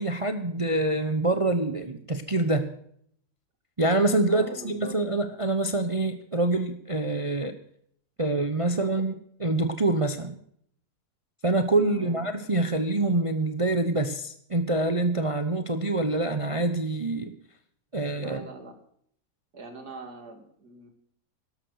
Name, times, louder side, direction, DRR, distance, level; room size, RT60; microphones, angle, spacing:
voice 1, 0.0-2.7 3.8-7.5 8.2-9.1 9.4-10.4 11.4-17.3 17.9-18.4, right 2 dB, 25° right, 9 dB, 0.8 m, -26 dB
voice 2, 4.3-5.0 8.8-9.0 11.9-12.2 18.1-18.8 19.5-20.9, right 3 dB, 70° right, 6 dB, 3.0 m, -42 dB
12.5 x 12.0 x 6.5 m, 0.64 s
omnidirectional pair, 1.7 m